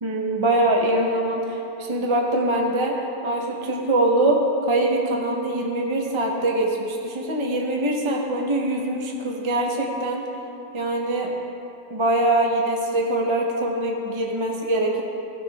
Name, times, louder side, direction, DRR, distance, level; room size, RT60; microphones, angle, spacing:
voice 1, 0.0-2.9 3.2-4.4 4.7-10.2 10.7-11.3 11.9-15.0, right 1 dB, 25° right, 0 dB, 0.7 m, -23 dB
15.0 x 6.1 x 3.5 m, 2.8 s
omnidirectional pair, 1.4 m